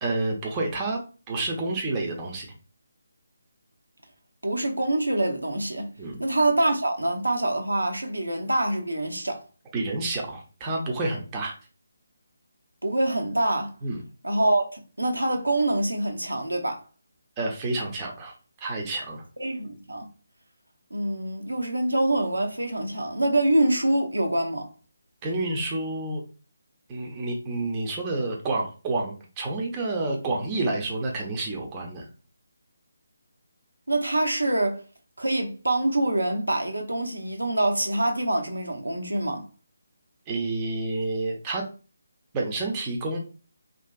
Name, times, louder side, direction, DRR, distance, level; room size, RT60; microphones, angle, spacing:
voice 1, 0.0-1.0 1.3-2.5 6.0-6.2 9.7-11.6 13.8-14.0 17.4-18.3 18.6-19.2 25.2-26.2 26.9-32.1 40.3-41.6 42.3-43.2, right 2 dB, 20° right, 0.6 m, -29 dB
voice 2, 4.4-5.9 6.2-9.4 12.8-13.7 14.2-16.8 19.4-20.1 20.9-24.7 33.9-34.8 35.2-39.4, right 1 dB, 90° right, 0.7 m, -25 dB
2.8 x 2.5 x 2.3 m
figure-of-eight pair, 155°, 0 cm